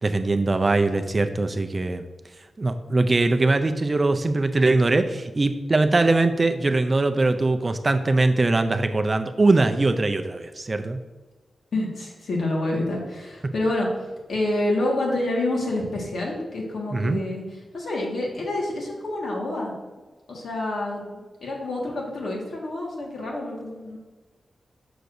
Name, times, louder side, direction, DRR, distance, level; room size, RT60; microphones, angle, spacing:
voice 1, 0.0-2.0 2.6-11.0 16.9-17.2, right 2 dB, 30° right, 8 dB, 0.4 m, -21 dB
voice 2, 11.7-13.9 14.3-17.4 17.7-19.7 20.3-24.0, left 2 dB, 75° left, -2 dB, 1.6 m, -28 dB
6.7 x 6.3 x 2.6 m, 1.3 s
wide cardioid pair, 115°, 0 cm